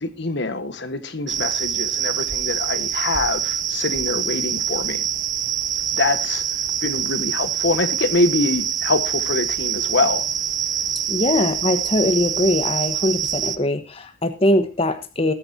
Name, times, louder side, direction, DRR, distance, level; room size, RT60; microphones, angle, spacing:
voice 1, 0.0-5.0 5.9-6.4 6.8-10.2, left 2 dB, 60° left, 1.5 m, -24 dB
sound 1, 1.3-13.6, right 9 dB, 40° right, 0.8 m, -25 dB
voice 2, 11.1-15.3, left 1 dB, 30° left, 1.2 m, -21 dB
20.0 x 9.8 x 2.8 m
head